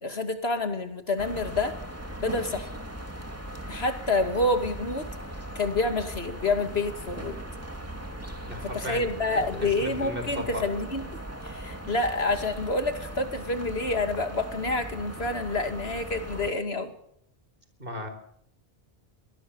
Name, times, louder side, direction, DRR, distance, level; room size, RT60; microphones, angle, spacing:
voice 1, 0.0-1.8 2.2-2.7 3.7-5.1 5.5-7.4 8.7-16.9, left 2 dB, 70° left, 7 dB, 2.7 m, -28 dB
sound 1, 1.2-16.5, right 1 dB, 15° right, 2.6 m, -39 dB
voice 2, 8.4-9.0 9.5-10.7 17.8-18.1, left 1 dB, 55° right, 7 dB, 4.8 m, -35 dB
23.5 x 19.5 x 7.2 m, 0.70 s
omnidirectional pair, 1.1 m